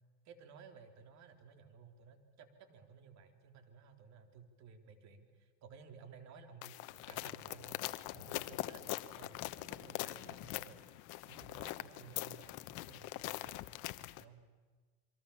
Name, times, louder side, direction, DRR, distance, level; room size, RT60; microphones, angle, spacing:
voice 1, 0.3-6.8 7.1-7.8 8.1-10.8 11.3-13.5 14.2-14.5, right 5 dB, 50° right, 6 dB, 3.8 m, -56 dB
sound 1, 6.6-14.2, left 17 dB, 60° left, 1.1 m, -43 dB
28.5 x 23.5 x 7.2 m, 1.4 s
supercardioid pair, 105°, 35 cm